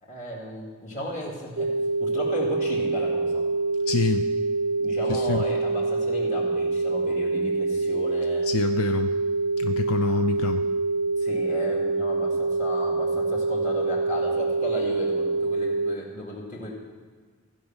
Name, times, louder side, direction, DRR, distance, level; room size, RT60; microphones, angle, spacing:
voice 1, 0.0-1.7 2.0-3.4 4.8-8.5 11.2-16.7, equal, 35° left, -3 dB, 2.2 m, -34 dB
sound 1, 1.6-16.0, right 3 dB, 60° right, 0.6 m, -26 dB
voice 2, 3.9-4.3 5.1-5.4 8.4-9.1 9.6-10.6, left 5 dB, 70° left, 7 dB, 0.4 m, -26 dB
15.5 x 5.3 x 7.3 m, 1.5 s
head